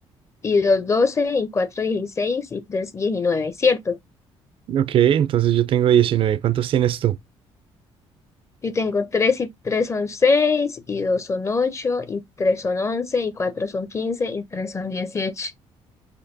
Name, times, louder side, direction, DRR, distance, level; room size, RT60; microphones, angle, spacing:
voice 1, 0.4-4.0 8.6-15.5, left 4 dB, 25° left, 0.6 m, -23 dB
voice 2, 4.7-7.2, right 11 dB, 55° right, 0.4 m, -19 dB
4.3 x 2.5 x 2.6 m
cardioid pair, 100°, 11 cm